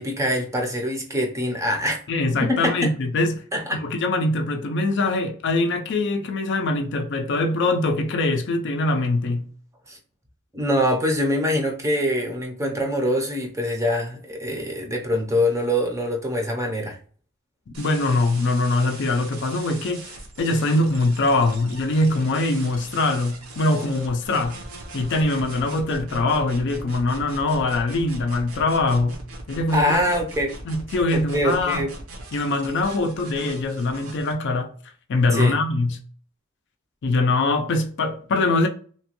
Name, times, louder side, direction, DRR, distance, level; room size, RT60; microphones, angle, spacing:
voice 1, 0.0-2.0 2.5-2.9 3.5-3.8 9.9-10.0 10.5-17.0 29.7-30.5 31.1-31.9 35.3-35.6, equal, 15° right, 0.5 m, -24 dB
voice 2, 2.1-3.4 3.7-9.5 17.8-20.1 20.4-24.6 24.9-29.2 29.5-30.0 30.6-31.9 32.3-34.7 35.1-36.0 37.0-38.7, left 2 dB, 55° left, 0.4 m, -23 dB
sound 1, 17.7-34.3, right 2 dB, 75° right, 0.8 m, -41 dB
2.9 x 2.1 x 2.9 m
head